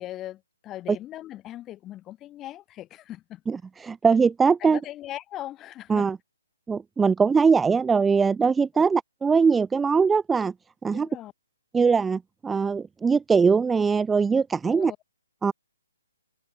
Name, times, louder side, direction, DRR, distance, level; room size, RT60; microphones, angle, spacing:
voice 1, 0.0-3.4 4.6-6.1 8.7-8.8 10.9-11.3 14.6-15.0, left 13 dB, 20° left, 2.7 m, -39 dB
voice 2, 3.5-4.8 5.9-6.2 6.7-10.5 10.8-11.1 11.7-14.9 15.4-15.5, right 5 dB, 10° right, 0.7 m, -21 dB
figure-of-eight pair, 135°, 0 cm